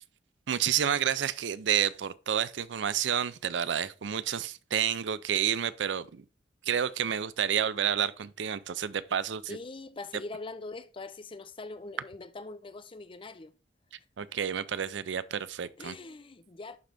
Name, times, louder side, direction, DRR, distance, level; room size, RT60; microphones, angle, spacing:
voice 1, 0.5-6.2 6.6-9.6 14.2-16.0, right 9 dB, 80° right, 0.5 m, -30 dB
voice 2, 9.5-13.5 15.8-16.8, left 3 dB, 30° left, 0.5 m, -42 dB
11.0 x 3.9 x 3.4 m
head